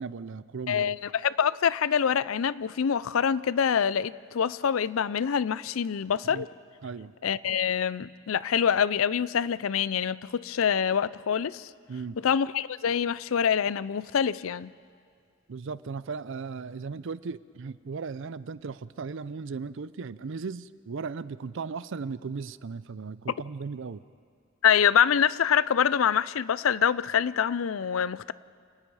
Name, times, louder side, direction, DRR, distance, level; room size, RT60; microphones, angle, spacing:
voice 1, 0.0-1.0 6.2-6.5 6.8-7.1 11.9-12.2 15.5-24.0, right 5 dB, 65° right, 17 dB, 0.5 m, -37 dB
voice 2, 0.7-6.5 7.2-11.7 12.2-14.7 24.6-28.3, left 8 dB, 80° left, 18 dB, 0.5 m, -25 dB
28.5 x 19.0 x 4.8 m, 2.2 s
head